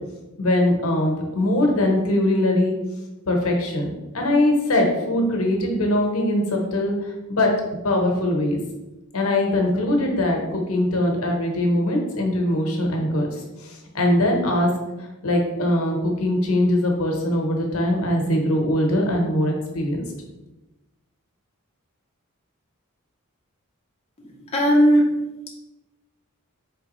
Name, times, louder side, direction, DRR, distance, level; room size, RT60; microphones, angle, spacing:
voice 1, 0.4-2.7 3.3-3.9 4.1-7.5 7.8-8.6 9.1-13.3 13.6-14.7 15.2-20.0, left 1 dB, 75° left, 1 dB, 0.9 m, -21 dB
voice 2, 24.2-25.1, equal, 30° left, -3 dB, 0.6 m, -18 dB
4.3 x 3.4 x 3.0 m, 1.0 s
head